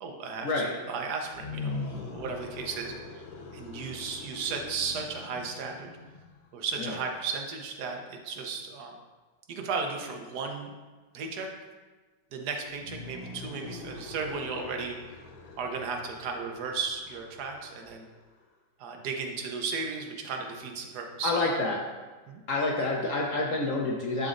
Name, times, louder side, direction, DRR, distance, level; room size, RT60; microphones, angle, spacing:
voice 1, 0.0-3.2 3.5-5.9 6.5-9.0 9.5-10.7 11.1-11.5 12.3-15.2 15.6-18.1 18.8-21.4 22.3-22.4, right 5 dB, 65° right, 3 dB, 1.2 m, -35 dB
sound 1, 1.3-6.4 12.7-18.4, left 3 dB, 90° left, 1.6 m, -42 dB
voice 2, 21.2-21.8 22.5-24.3, left 2 dB, 70° left, -2 dB, 0.8 m, -28 dB
11.0 x 4.0 x 2.5 m, 1.3 s
omnidirectional pair, 2.1 m